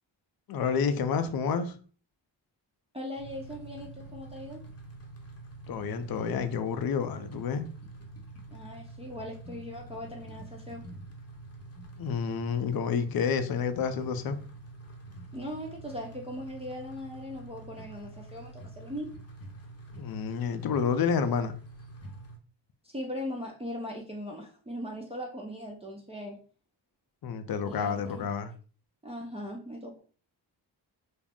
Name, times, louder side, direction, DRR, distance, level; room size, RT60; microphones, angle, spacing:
voice 1, 0.5-1.8 5.7-7.7 12.0-14.4 20.0-21.5 27.2-28.5, left 6 dB, 50° left, 0.5 m, -29 dB
voice 2, 2.9-4.6 8.5-10.8 15.3-19.1 22.8-26.4 27.7-28.2 29.0-30.0, left 1 dB, 15° right, 0.6 m, -39 dB
sound 1, 3.2-22.4, right 2 dB, 30° left, 0.8 m, -46 dB
2.4 x 2.1 x 3.5 m
cardioid pair, 50°, 47 cm